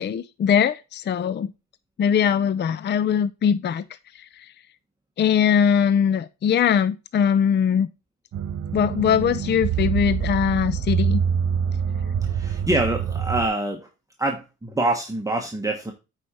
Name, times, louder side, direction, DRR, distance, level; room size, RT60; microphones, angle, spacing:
voice 1, 0.0-1.5 2.0-3.8 4.1-4.5 5.2-7.9 8.7-11.2, left 8 dB, 35° left, 0.5 m, -21 dB
sound 1, 8.3-13.5, right 8 dB, 55° right, 1.3 m, -25 dB
voice 2, 12.2-13.9 14.2-15.9, right 2 dB, 10° right, 1.3 m, -25 dB
8.4 x 5.0 x 4.2 m
cardioid pair, 90°, 30 cm